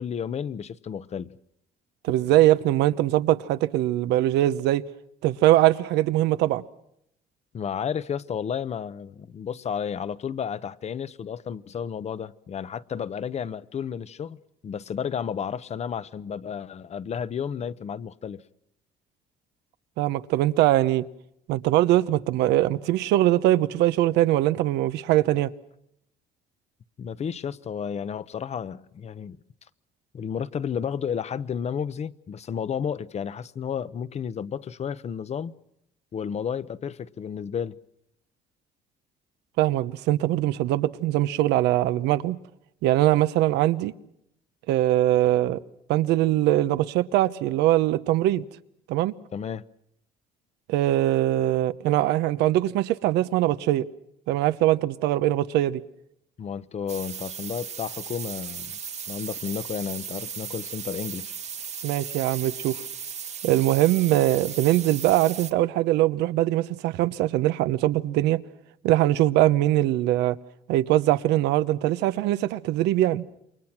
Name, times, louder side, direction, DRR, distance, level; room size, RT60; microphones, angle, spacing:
voice 1, 0.0-1.4 7.5-18.4 27.0-29.4 30.1-35.5 36.1-37.8 49.3-49.6 56.4-58.8 59.1-61.4, left 7 dB, 40° left, 0.9 m, -32 dB
voice 2, 2.0-4.8 5.2-6.6 20.0-21.0 21.5-25.5 39.6-42.4 42.8-43.9 44.7-45.6 45.9-48.4 48.9-49.1 50.7-53.9 54.3-55.8 61.8-62.8 63.4-68.4 68.8-70.4 70.7-73.2, right 14 dB, 90° right, 1.0 m, -22 dB
sound 1, 56.9-65.5, right 7 dB, 40° right, 1.3 m, -36 dB
28.5 x 23.5 x 6.0 m
cardioid pair, 110°, 17 cm